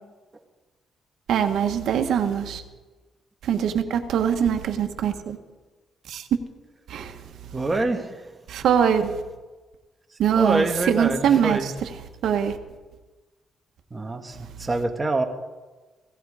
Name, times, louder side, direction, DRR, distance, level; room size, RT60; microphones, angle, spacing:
voice 1, 1.3-2.6 3.4-5.4 6.1-6.3 6.9-7.2 8.5-9.2 10.2-12.0 12.2-12.6, right 8 dB, 70° right, 1.5 m, -23 dB
voice 2, 7.5-8.1 10.4-11.7 13.9-15.2, right 2 dB, 20° right, 1.7 m, -25 dB
17.0 x 15.5 x 5.0 m
cardioid pair, 130°, 0 cm